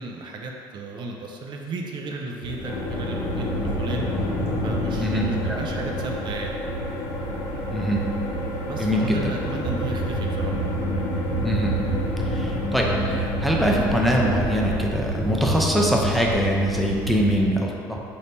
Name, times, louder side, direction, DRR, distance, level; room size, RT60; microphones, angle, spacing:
voice 1, 0.0-3.5 3.8-4.3 4.6-6.5 8.6-10.6, right 2 dB, 50° right, 1 dB, 0.4 m, -34 dB
sound 1, 2.4-17.4, right 1 dB, 25° left, 0.9 m, -28 dB
sound 2, 2.6-14.7, left 2 dB, 70° left, 0.7 m, -34 dB
voice 2, 5.0-5.6 7.7-8.0 8.8-9.2 11.4-11.7 12.2-18.0, equal, ahead, -2 dB, 0.5 m, -23 dB
3.4 x 2.7 x 4.2 m, 2.5 s
supercardioid pair, 85°, 10 cm